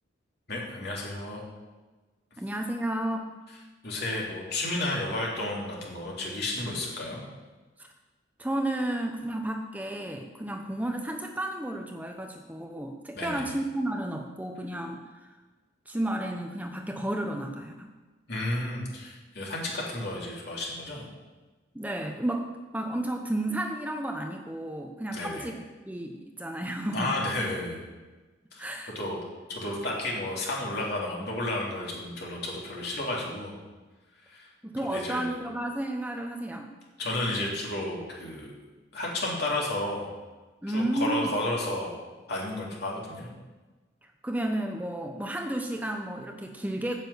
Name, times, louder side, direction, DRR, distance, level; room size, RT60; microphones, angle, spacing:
voice 1, 0.5-1.4 3.8-7.2 13.1-13.5 18.3-21.1 25.1-25.5 26.9-27.8 28.5-28.7 28.9-29.2 29.5-33.5 34.2-34.5 34.8-35.3 37.0-38.5 38.9-40.1 40.7-42.0 42.3-43.3, left 1 dB, 55° left, -3 dB, 3.1 m, -32 dB
voice 2, 2.4-3.3 7.8-7.9 8.4-15.3 15.9-18.0 21.7-27.2 28.6-28.9 34.6-36.7 40.6-41.4 44.2-47.0, right 1 dB, 10° right, 4 dB, 0.7 m, -32 dB
9.2 x 7.4 x 8.2 m, 1.2 s
head